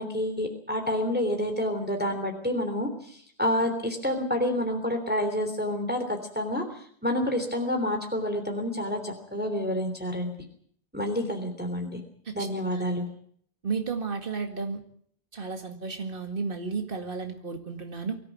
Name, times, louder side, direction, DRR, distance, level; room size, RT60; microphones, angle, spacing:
voice 1, 0.0-10.3 10.9-12.0 12.3-13.0, left 1 dB, 10° right, 4 dB, 3.2 m, -29 dB
voice 2, 12.2-12.8 13.6-14.8 15.3-18.2, right 4 dB, 55° right, 5 dB, 2.3 m, -33 dB
24.5 x 13.5 x 9.3 m, 0.62 s
omnidirectional pair, 1.1 m